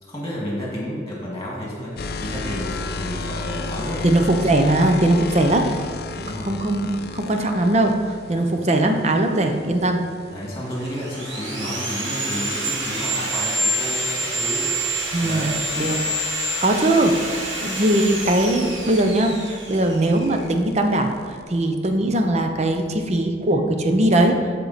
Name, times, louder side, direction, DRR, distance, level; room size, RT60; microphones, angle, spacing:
voice 1, 0.0-4.1 5.5-5.6 6.2-6.5 8.3-8.5 10.3-14.7 15.2-15.6, equal, 15° left, -4 dB, 1.9 m, -31 dB
sound 1, 2.0-8.0 10.4-21.4, left 3 dB, 55° left, 0.5 m, -35 dB
voice 2, 4.0-5.7 6.2-8.0 8.3-10.0 15.1-15.5 15.8-16.0 16.6-24.4, right 1 dB, 35° right, 5 dB, 0.7 m, -20 dB
Sawing, 10.6-20.4, right 1 dB, 90° right, 1.8 m, -27 dB
12.0 x 4.5 x 4.1 m, 2.1 s
head